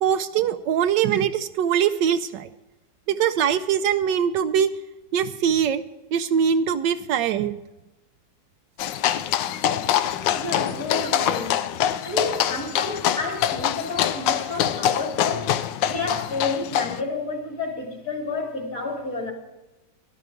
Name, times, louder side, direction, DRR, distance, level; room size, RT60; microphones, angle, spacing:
voice 1, 0.0-2.5 3.1-4.7 5.1-5.8 6.1-7.6, right 8 dB, 75° right, 11 dB, 1.2 m, -22 dB
sound 1, 8.8-17.0, left 10 dB, 80° left, 1.3 m, -24 dB
voice 2, 10.3-11.6 12.0-15.5 15.9-19.3, left 3 dB, 45° left, 1 dB, 2.9 m, -30 dB
13.5 x 11.0 x 4.6 m, 1.0 s
omnidirectional pair, 2.0 m